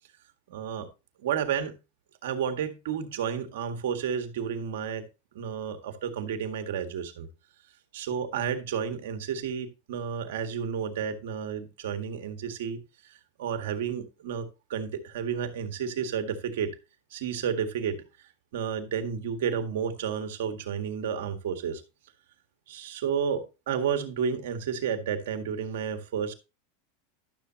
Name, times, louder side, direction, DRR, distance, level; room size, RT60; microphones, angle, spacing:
voice 1, 0.5-0.9 1.2-1.7 2.2-5.0 5.3-7.3 7.9-12.8 13.0-16.7 17.1-18.0 18.5-21.8 22.7-26.3, right 7 dB, 75° right, 1.8 m, -31 dB
12.0 x 7.2 x 2.9 m
supercardioid pair, 130°, 0 cm